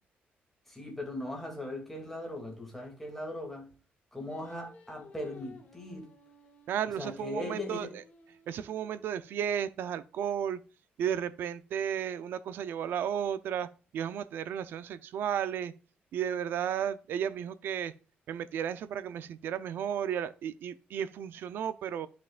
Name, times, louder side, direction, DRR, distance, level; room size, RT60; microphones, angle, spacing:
voice 1, 0.7-3.7 4.1-6.1 7.0-7.9, left 1 dB, 5° left, 2.5 m, -39 dB
Singing, 4.3-9.6, left 3 dB, 45° left, 1.9 m, -56 dB
voice 2, 6.7-7.9 8.5-10.6 11.0-13.7 13.9-15.7 16.1-17.9 18.3-22.1, right 9 dB, 75° right, 0.6 m, -33 dB
12.0 x 5.9 x 2.5 m
wide cardioid pair, 165°, 4 cm